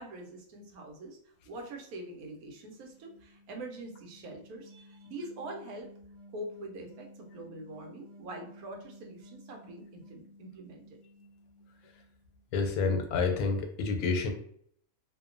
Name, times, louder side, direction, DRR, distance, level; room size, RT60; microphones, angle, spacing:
voice 1, 0.0-5.9 6.3-11.0, right 1 dB, 85° right, 1 dB, 1.1 m, -44 dB
sound 1, 2.3-12.4, left 1 dB, 55° right, 0.8 m, -55 dB
voice 2, 12.5-14.3, left 4 dB, 85° left, 4 dB, 1.1 m, -28 dB
2.8 x 2.1 x 2.5 m, 0.64 s
omnidirectional pair, 1.5 m